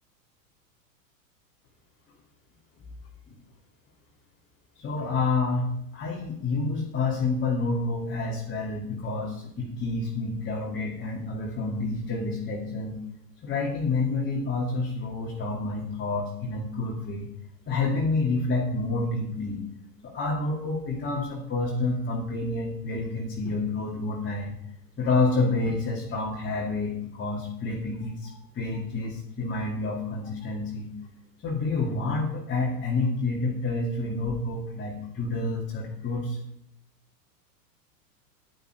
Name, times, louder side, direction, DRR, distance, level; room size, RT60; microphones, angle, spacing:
voice 1, 4.8-13.0 13.4-17.3 17.7-19.6 20.0-24.6 25.0-30.9 31.4-36.4, left 3 dB, 25° left, -3 dB, 2.6 m, -28 dB
11.5 x 10.5 x 5.0 m, 0.76 s
hypercardioid pair, 100°, 48 cm